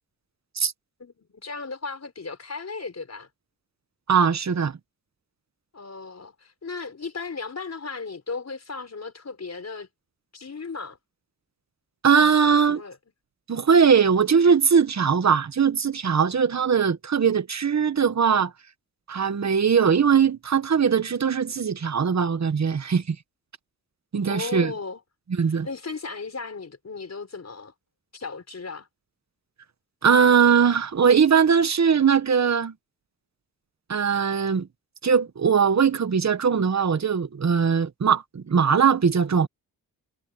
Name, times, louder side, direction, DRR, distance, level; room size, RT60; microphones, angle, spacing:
voice 1, 1.0-3.3 5.7-9.9 10.3-11.0 12.4-13.0 24.3-25.0 25.5-27.7 28.1-28.9, left 4 dB, 45° left, 4.6 m, -36 dB
voice 2, 4.1-4.8 12.0-12.8 13.5-18.5 19.1-23.2 24.1-24.7 25.4-25.7 30.0-32.7 33.9-34.7 35.0-39.5, right 6 dB, 45° right, 1.3 m, -20 dB
cardioid pair, 85°, 37 cm